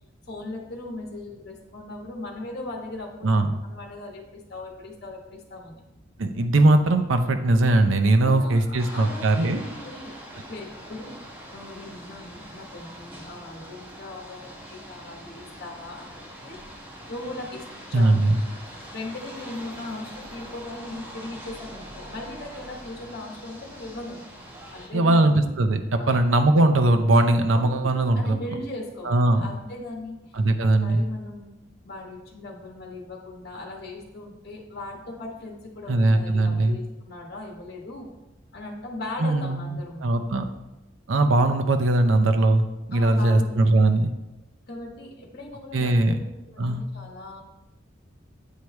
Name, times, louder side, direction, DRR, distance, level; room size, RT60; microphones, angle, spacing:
voice 1, 0.3-5.8 8.2-11.1 11.5-18.2 18.7-24.2 24.7-25.5 26.0-26.2 27.5-30.3 30.6-31.6 31.8-38.1 38.5-40.2 42.9-43.8 44.7-47.4, left 2 dB, 55° left, -1 dB, 1.2 m, -39 dB
voice 2, 6.2-9.6 17.9-18.4 24.9-28.4 29.1-29.5 30.3-31.1 35.9-36.8 39.2-40.4 41.1-44.1 45.7-46.2 46.6-46.9, right 2 dB, 85° right, 6 dB, 0.6 m, -20 dB
sound 1, 8.8-24.9, equal, 10° right, 0.9 m, -43 dB
8.2 x 4.6 x 3.1 m, 0.99 s
head